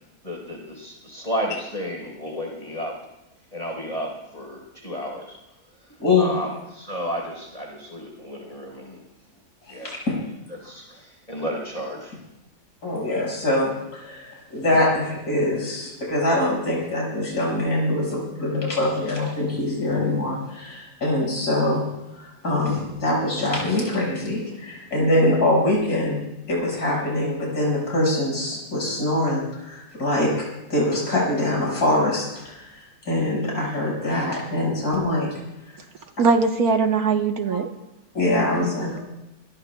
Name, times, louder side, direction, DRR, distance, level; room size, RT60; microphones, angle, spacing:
voice 1, 0.2-3.0 3.5-5.4 5.8-9.0 9.7-9.9 10.5-12.1, equal, 25° left, 0 dB, 4.4 m, -32 dB
voice 2, 9.8-10.2 12.8-21.8 22.2-26.2 26.5-35.3 35.7-35.8 38.1-39.0, left 1 dB, 65° left, -4 dB, 6.4 m, -23 dB
voice 3, 36.2-37.7, right 4 dB, 65° right, 5 dB, 1.7 m, -20 dB
26.0 x 21.5 x 2.3 m, 0.95 s
omnidirectional pair, 1.8 m